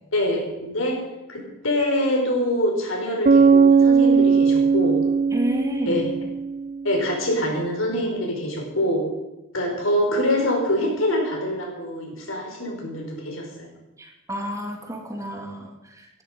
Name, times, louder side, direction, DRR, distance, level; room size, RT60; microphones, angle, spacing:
voice 1, 0.1-1.0 1.3-5.0 5.9-6.1 6.8-9.0 9.5-13.7, left 1 dB, 80° left, 1 dB, 4.9 m, -24 dB
Bass guitar, 3.2-6.9, right 5 dB, 40° right, 0.5 m, -18 dB
voice 2, 5.3-6.0 14.0-16.2, equal, 15° right, 2 dB, 2.5 m, -30 dB
17.5 x 12.5 x 5.2 m, 0.99 s
head